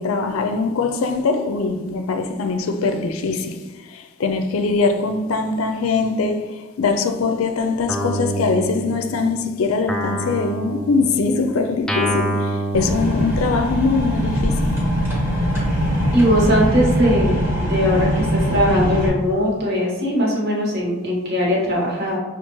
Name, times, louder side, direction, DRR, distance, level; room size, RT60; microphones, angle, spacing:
voice 1, 0.0-14.7, left 4 dB, 90° left, 6 dB, 0.4 m, -22 dB
Guitar, 7.9-9.4 9.9-13.8, right 1 dB, 5° left, 0.3 m, -27 dB
sound 1, 12.7-19.1, equal, 10° right, 0.9 m, -21 dB
voice 2, 16.1-22.2, equal, 50° right, -3 dB, 1.2 m, -20 dB
5.8 x 2.4 x 3.0 m, 1.2 s
head